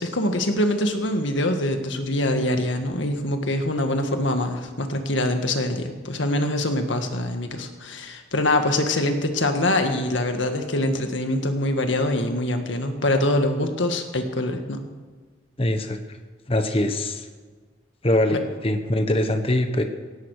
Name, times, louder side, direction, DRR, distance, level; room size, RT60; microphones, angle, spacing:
voice 1, 0.0-14.8 18.3-18.4, left 1 dB, 85° left, 6 dB, 1.8 m, -24 dB
voice 2, 15.6-16.0 16.5-17.3 18.0-19.8, left 1 dB, 30° left, 7 dB, 1.2 m, -22 dB
18.0 x 16.0 x 4.9 m, 1.4 s
head